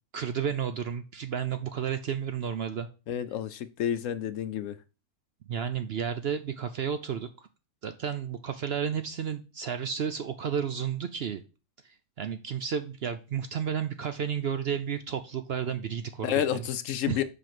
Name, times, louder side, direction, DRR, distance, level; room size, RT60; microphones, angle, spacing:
voice 1, 0.1-2.9 5.5-7.3 7.8-11.4 12.2-16.6 17.1-17.2, right 8 dB, 60° right, 0.7 m, -32 dB
voice 2, 3.1-4.8 16.2-17.2, left 10 dB, 70° left, 0.9 m, -30 dB
5.7 x 5.1 x 6.0 m
omnidirectional pair, 1.5 m